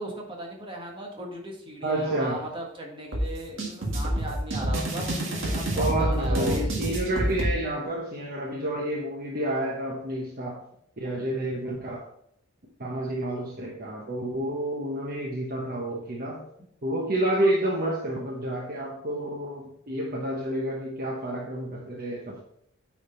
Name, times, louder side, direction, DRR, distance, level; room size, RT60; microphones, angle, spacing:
voice 1, 0.0-6.6, right 1 dB, 25° right, 0 dB, 1.6 m, -37 dB
voice 2, 1.8-2.4 5.8-10.6 11.0-12.1 12.8-16.4 16.8-22.4, right 1 dB, 45° right, -1 dB, 1.1 m, -29 dB
sound 1, 3.1-7.5, right 1 dB, 65° right, 1.9 m, -27 dB
9.0 x 5.0 x 3.9 m, 0.70 s
head